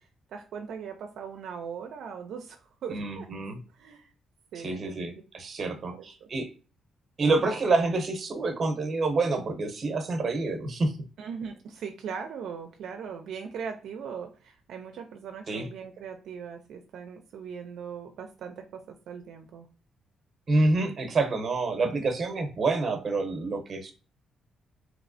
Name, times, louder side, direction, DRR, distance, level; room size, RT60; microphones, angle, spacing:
voice 1, 0.3-3.3 3.7-4.1 4.5-5.0 5.6-6.3 11.2-19.7, right 6 dB, 80° right, 5 dB, 0.4 m, -40 dB
voice 2, 2.9-3.6 4.6-6.5 7.2-10.9 15.5-15.7 20.5-23.9, right 3 dB, 40° right, 6 dB, 0.8 m, -27 dB
3.1 x 3.0 x 2.5 m, 0.36 s
cardioid pair, 95°, 0 cm